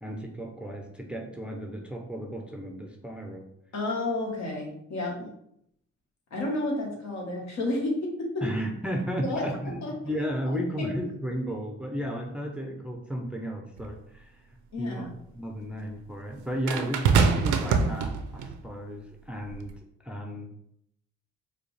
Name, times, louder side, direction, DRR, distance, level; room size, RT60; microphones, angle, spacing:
voice 1, 0.0-3.5 8.4-14.4 14.8-15.1 15.3-19.7 20.0-20.5, equal, 5° right, 1 dB, 0.6 m, -34 dB
voice 2, 3.7-5.3 6.3-8.5 9.2-9.9 10.5-10.9 14.7-15.1, left 2 dB, 65° left, -2 dB, 1.5 m, -31 dB
sound 1, 13.8-13.9 16.7-18.6 19.5-19.7, right 5 dB, 80° right, 0.6 m, -24 dB
4.8 x 2.3 x 3.2 m, 0.74 s
cardioid pair, 90°, 30 cm